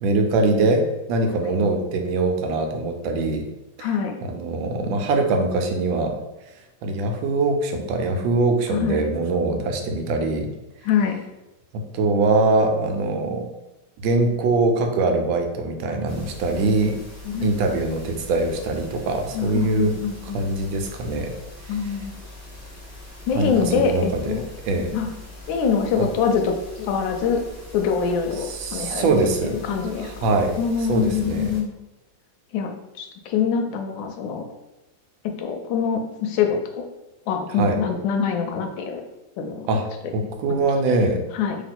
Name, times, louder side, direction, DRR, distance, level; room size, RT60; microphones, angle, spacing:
voice 1, 0.0-3.4 3.8-3.9 4.2-6.2 6.8-10.5 11.7-13.5 14.0-16.9 17.4-20.0 20.3-21.3 21.7-21.8 23.3-24.9 26.0-26.1 28.5-29.5 30.0-30.6 30.9-31.5 37.6-37.8 39.7-39.8 40.1-41.2, right 3 dB, 90° right, 5 dB, 1.4 m, -22 dB
voice 2, 3.8-4.2 8.7-9.1 10.8-11.2 17.2-17.5 19.3-20.4 21.7-22.1 23.3-24.4 24.9-25.1 25.5-27.4 27.7-29.1 29.4-30.3 30.6-31.7 32.5-34.4 35.4-36.6 37.3-39.0 39.4-39.7 40.5-40.6 41.3-41.6, left 6 dB, 85° left, 4 dB, 1.3 m, -24 dB
sound 1, 16.1-31.6, left 2 dB, 20° left, 0.4 m, -42 dB
3.0 x 2.9 x 4.2 m, 1.0 s
omnidirectional pair, 2.0 m